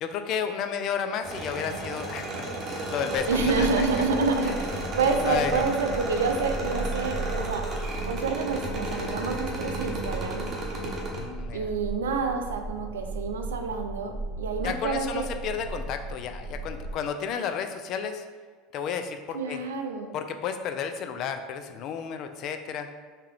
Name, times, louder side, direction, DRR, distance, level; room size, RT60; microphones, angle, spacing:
voice 1, 0.0-3.9 5.2-5.7 11.1-11.7 14.6-18.2 18.7-19.6 20.1-22.9, left 7 dB, 55° left, 7 dB, 0.3 m, -32 dB
sound 1, 1.2-11.2, right 1 dB, 40° right, 0.9 m, -33 dB
sound 2, 3.1-16.9, right 2 dB, 10° right, 1.0 m, -37 dB
voice 2, 3.3-7.6 8.1-10.5 11.5-15.3 19.3-20.1, right 4 dB, 85° right, 5 dB, 0.3 m, -28 dB
3.4 x 2.8 x 3.4 m, 1.5 s
hypercardioid pair, 85°, 0 cm